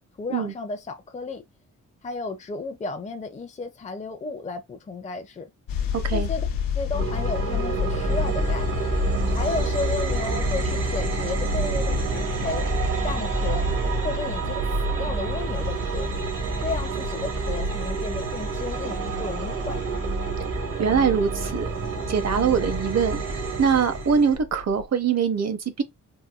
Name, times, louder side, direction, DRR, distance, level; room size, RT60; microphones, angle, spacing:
voice 1, 0.2-1.4 2.0-5.5 6.1-6.4 6.7-8.7 9.3-12.7 13.0-13.7 14.0-16.1 16.6-19.8, left 3 dB, 20° left, 0.5 m, -33 dB
sound 1, 5.7-24.9, left 8 dB, 90° left, 0.6 m, -32 dB
voice 2, 5.9-6.3 20.8-21.7 22.1-25.8, right 6 dB, 50° right, 0.8 m, -23 dB
sound 2, 6.9-24.4, right 4 dB, 75° right, 1.3 m, -28 dB
4.0 x 2.2 x 2.4 m
cardioid pair, 90°, 33 cm